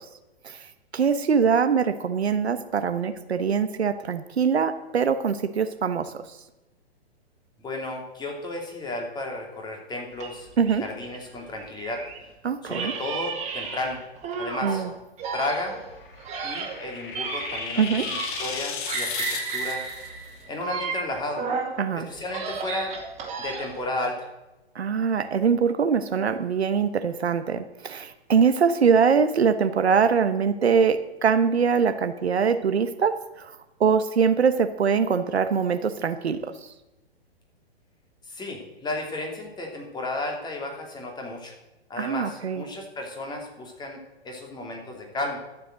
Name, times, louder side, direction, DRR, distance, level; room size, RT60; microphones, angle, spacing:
voice 1, 0.9-6.2 10.6-10.8 12.4-12.9 14.6-14.9 17.8-18.1 21.8-22.1 24.7-33.5 33.8-36.5 42.0-42.6, right 6 dB, 75° right, 10 dB, 1.1 m, -23 dB
voice 2, 7.6-10.5 10.8-12.0 12.6-14.0 14.4-14.8 15.3-15.8 16.4-17.8 18.1-19.2 19.5-19.8 20.5-21.4 21.9-22.9 23.4-24.3 38.3-41.5 41.9-44.0 44.2-45.4, left 2 dB, 15° left, 1 dB, 2.9 m, -33 dB
sound 1, 10.2-12.2 12.7-14.8 15.2-18.6 18.9-21.8 22.2-23.9, right 5 dB, 20° right, 2.7 m, -33 dB
sound 2, 15.9-20.1, left 6 dB, 50° left, 2.4 m, -34 dB
12.5 x 7.6 x 7.6 m, 0.99 s
figure-of-eight pair, 120°, 32 cm